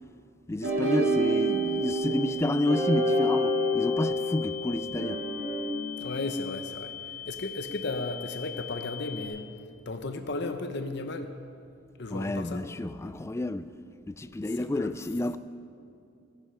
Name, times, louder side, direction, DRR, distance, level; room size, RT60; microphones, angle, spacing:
voice 1, 0.5-5.2 12.1-13.7 14.1-15.4, left 1 dB, 15° left, 0.3 m, -30 dB
sound 1, 0.6-5.7, equal, 70° right, 2.5 m, -27 dB
sound 2, 1.0-9.3, left 10 dB, 15° right, 2.7 m, -41 dB
voice 2, 6.0-9.4 9.9-11.3 12.0-12.6 14.6-14.9, left 3 dB, 55° left, 0.7 m, -35 dB
16.5 x 10.0 x 5.7 m
head